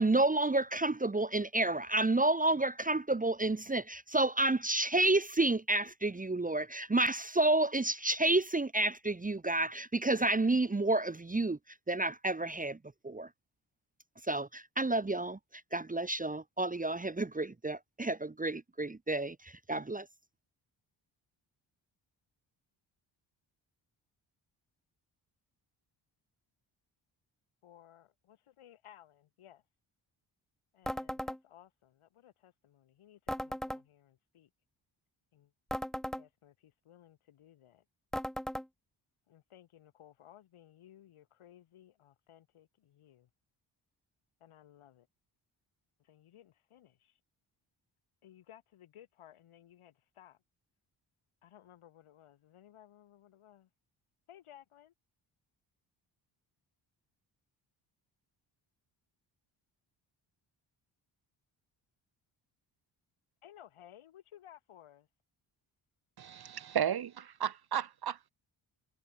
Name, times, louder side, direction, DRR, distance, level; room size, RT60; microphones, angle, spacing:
voice 1, 0.0-11.6 11.9-12.8 13.0-13.3 14.3-15.4 15.7-20.1, right 2 dB, 15° right, 1.0 m, -30 dB
voice 2, 27.6-29.6 30.7-34.5 35.3-35.5 36.1-37.8 39.3-43.3 44.4-45.1 46.0-47.2 48.2-50.4 51.4-53.7 54.3-54.9 63.4-65.1, left 11 dB, 80° left, 7.7 m, -58 dB
sound 1, 30.9-31.4 33.3-33.8 35.7-36.2 38.1-38.7, equal, ahead, 0.3 m, -37 dB
voice 3, 66.2-68.3, right 9 dB, 50° right, 1.0 m, -34 dB
supercardioid pair, 55°, 49 cm